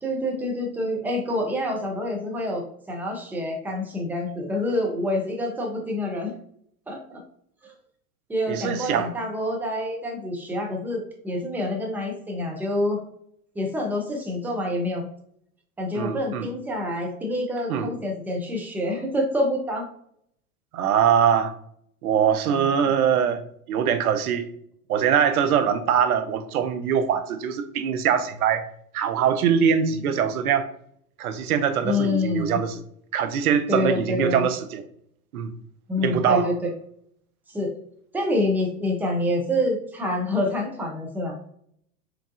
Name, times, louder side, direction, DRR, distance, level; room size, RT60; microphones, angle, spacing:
voice 1, 0.0-6.3 6.9-7.2 7.6-7.7 8.3-13.0 13.6-15.1 15.8-19.9 22.5-22.8 31.8-32.6 33.7-34.5 35.9-36.7 37.5-37.7 38.1-41.4, left 1 dB, 5° right, 0.3 m, -27 dB
voice 2, 8.5-9.1 15.9-16.5 17.7-17.9 20.7-21.5 22.0-23.4 23.7-24.5 24.9-28.7 28.9-30.7 31.2-32.8 33.1-34.8 35.3-35.5 36.0-36.5, right 8 dB, 70° right, 0.7 m, -22 dB
4.6 x 3.5 x 2.4 m
hypercardioid pair, 100°, 45 cm